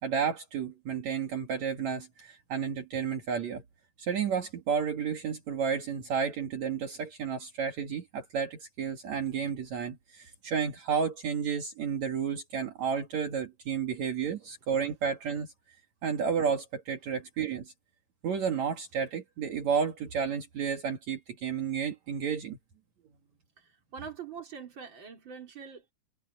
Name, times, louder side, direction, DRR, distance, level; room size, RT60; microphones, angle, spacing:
voice 1, 0.0-3.6 4.0-15.5 16.0-17.7 18.2-22.6, right 7 dB, 60° right, 3.2 m, -31 dB
voice 2, 23.6-25.9, right 6 dB, 35° right, 4.1 m, -44 dB
omnidirectional pair, 3.7 m